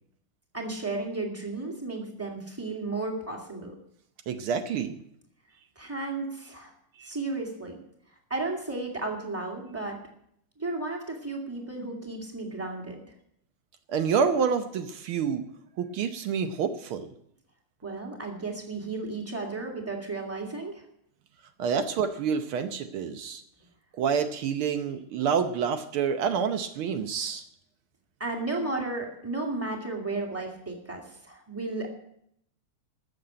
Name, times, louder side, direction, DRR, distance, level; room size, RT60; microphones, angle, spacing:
voice 1, 0.5-3.7 5.8-6.7 7.0-7.8 8.3-10.0 10.6-13.0 17.8-20.8 28.2-32.0, right 3 dB, 5° right, 1 dB, 2.2 m, -33 dB
voice 2, 4.3-5.0 7.0-7.1 13.9-15.4 15.8-17.1 21.6-23.4 24.0-27.4, right 6 dB, 75° right, 8 dB, 1.7 m, -28 dB
14.0 x 6.9 x 8.8 m, 0.72 s
omnidirectional pair, 2.4 m